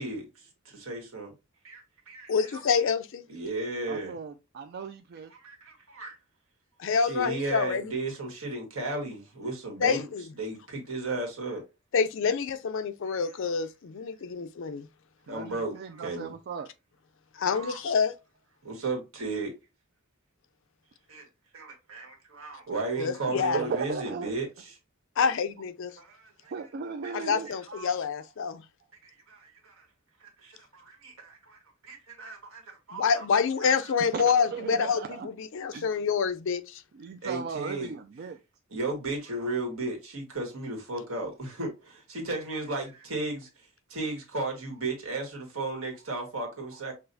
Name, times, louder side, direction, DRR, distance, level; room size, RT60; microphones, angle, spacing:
voice 1, 0.0-1.3 1.6-2.6 3.3-4.2 5.3-6.2 6.9-10.1 10.4-11.6 13.0-13.2 15.3-16.3 17.5-17.8 18.6-19.5 21.1-21.3 21.5-24.8 26.0-26.5 27.0-27.1 27.5-27.9 29.0-29.9 30.2-31.6 31.8-33.2 37.2-37.9 38.7-43.5 43.9-46.9, right 2 dB, 80° right, 1.6 m, -35 dB
voice 2, 2.3-3.2 6.8-7.9 9.8-10.2 11.9-14.9 17.4-18.1 23.0-23.6 25.2-25.9 27.1-28.6 32.9-36.8, left 6 dB, 65° left, 0.4 m, -27 dB
voice 3, 3.9-5.3 15.3-16.7 23.4-24.3 26.5-27.5 34.1-35.3 35.7-35.9 36.9-38.4, right 5 dB, 50° right, 0.3 m, -37 dB
5.9 x 2.5 x 2.6 m
head